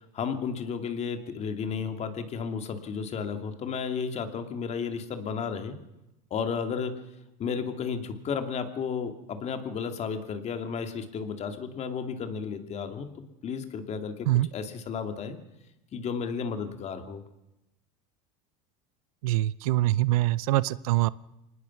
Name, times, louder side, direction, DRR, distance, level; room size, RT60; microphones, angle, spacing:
voice 1, 0.1-5.8 6.3-7.0 7.4-13.1 13.4-15.4 15.9-17.2, left 6 dB, 40° left, 7 dB, 2.5 m, -33 dB
voice 2, 19.2-21.1, right 16 dB, 85° right, 19 dB, 0.7 m, -24 dB
25.0 x 19.5 x 6.0 m, 0.92 s
supercardioid pair, 115°, 18 cm